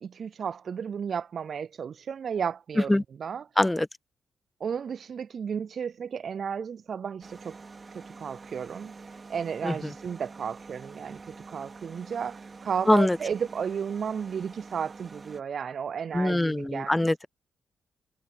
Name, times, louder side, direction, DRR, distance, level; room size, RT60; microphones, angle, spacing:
voice 1, 0.0-3.5 4.6-7.6 7.9-17.3, right 7 dB, 60° right, 0.3 m, -33 dB
sound 1, 7.2-15.4, right 4 dB, 40° right, 2.4 m, -46 dB
voice 2, 12.9-13.2 16.1-17.3, left 1 dB, 15° left, 0.5 m, -23 dB
supercardioid pair, 55°, 0 cm